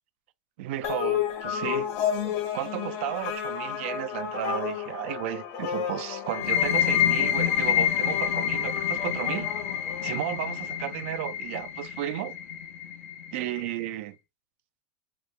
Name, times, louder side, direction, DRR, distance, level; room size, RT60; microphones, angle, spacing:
voice 1, 0.6-1.9 2.5-9.5 10.0-12.4 13.3-14.2, right 13 dB, 65° right, 0.4 m, -33 dB
sound 1, 0.8-10.6, left 9 dB, 50° left, 0.9 m, -32 dB
sound 2, 6.3-13.7, left 10 dB, 85° left, 0.8 m, -28 dB
3.0 x 2.0 x 3.2 m
supercardioid pair, 125°, 7 cm